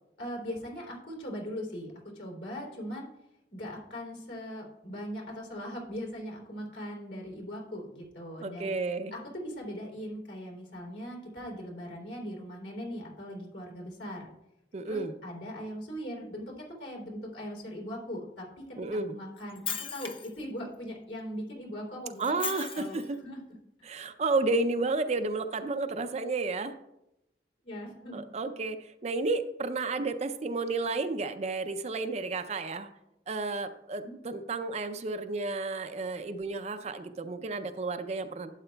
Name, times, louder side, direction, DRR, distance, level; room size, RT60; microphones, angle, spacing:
voice 1, 0.2-3.1 3.5-8.7 9.1-14.3 14.9-23.4 27.6-28.2 34.0-34.1, equal, 75° left, -2 dB, 3.1 m, -40 dB
voice 2, 8.4-9.1 14.7-15.1 18.8-19.2 22.2-23.2 23.8-26.7 28.1-32.9 33.3-38.5, right 3 dB, 40° right, 9 dB, 0.5 m, -32 dB
Shatter, 19.4-20.4 22.2-23.1, left 7 dB, 30° left, 0.6 m, -37 dB
11.5 x 8.8 x 2.3 m, 0.86 s
head